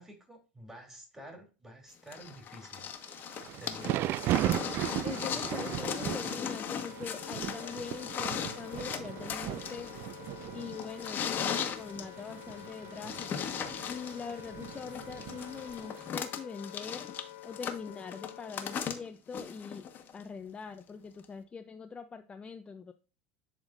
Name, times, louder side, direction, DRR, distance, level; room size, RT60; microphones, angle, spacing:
voice 1, 0.0-2.8 3.6-4.2 5.1-6.3, equal, 10° right, 2 dB, 2.8 m, -49 dB
sound 1, 2.1-20.2 21.2-21.3, left 8 dB, 40° left, 1.3 m, -38 dB
Thunder / Rain, 3.1-16.2, right 15 dB, 50° right, 0.3 m, -38 dB
voice 2, 5.0-9.9 10.5-13.5 13.9-17.1 17.4-22.9, left 5 dB, 20° left, 7 dB, 0.6 m, -43 dB
Wind instrument woodwind instrument, 6.2-18.9, left 15 dB, 75° left, 0.4 m, -49 dB
10.5 x 3.7 x 2.5 m, 0.32 s
supercardioid pair, 105°, 5 cm